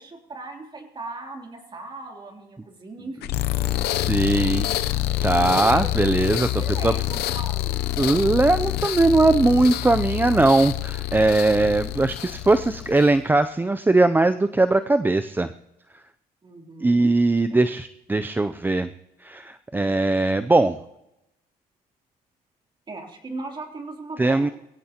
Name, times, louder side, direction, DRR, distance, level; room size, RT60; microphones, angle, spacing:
voice 1, 0.0-3.4 4.7-4.9 5.6-5.9 6.6-7.8 16.4-17.1 22.9-24.5, right 3 dB, 30° right, 2 dB, 3.2 m, -38 dB
sound 1, 3.2-13.2, left 14 dB, 75° left, 0.7 m, -26 dB
voice 2, 4.1-4.7 5.2-6.9 8.0-15.5 16.8-18.9 19.2-20.8 24.2-24.5, right 2 dB, 10° right, 10 dB, 0.5 m, -20 dB
22.0 x 16.5 x 3.0 m, 0.87 s
cardioid pair, 110°, 17 cm